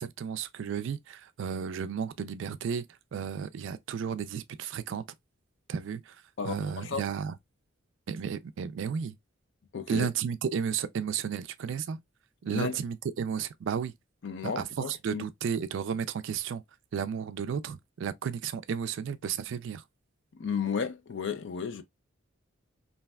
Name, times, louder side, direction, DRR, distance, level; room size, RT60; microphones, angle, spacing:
voice 1, 0.0-2.9 3.1-5.1 5.7-6.2 6.4-7.4 8.1-9.2 9.9-12.0 12.4-13.9 14.4-16.6 16.9-19.8, right 7 dB, 60° right, 0.3 m, -33 dB
voice 2, 6.4-7.0 9.7-10.1 12.5-12.8 14.2-15.2 20.4-21.8, left 6 dB, 60° left, 0.4 m, -33 dB
3.2 x 2.6 x 2.2 m
head